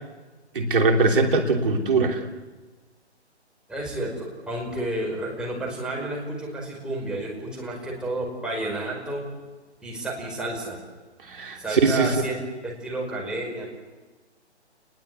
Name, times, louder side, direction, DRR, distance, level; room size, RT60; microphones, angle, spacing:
voice 1, 0.5-2.2 11.3-12.1, right 3 dB, 50° right, 3 dB, 3.2 m, -21 dB
voice 2, 3.7-9.2 9.8-10.8 11.5-13.7, right 2 dB, ahead, -3 dB, 5.2 m, -31 dB
29.5 x 21.5 x 8.3 m, 1.2 s
figure-of-eight pair, 135°, 34 cm